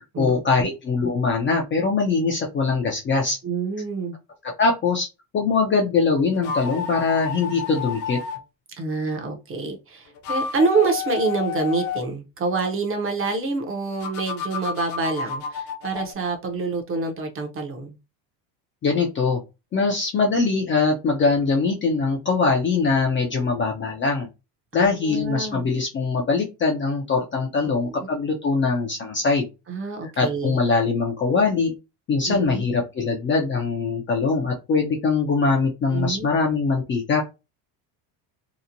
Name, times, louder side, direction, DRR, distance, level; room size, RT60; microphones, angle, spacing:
voice 1, 0.2-3.4 4.4-5.1 5.3-8.2 18.8-19.4 19.7-24.3 24.7-29.5 30.2-31.7 32.1-37.2, left 4 dB, 25° left, 0.4 m, -22 dB
voice 2, 3.4-4.2 8.8-18.0 24.7-25.7 27.6-28.1 29.7-30.6 32.3-32.6 35.9-36.3, right 4 dB, 30° right, 0.6 m, -27 dB
sound 1, 6.3-8.4 10.1-12.1 14.0-16.1, left 6 dB, 80° left, 0.9 m, -30 dB
2.9 x 2.1 x 2.5 m
cardioid pair, 125°, 48 cm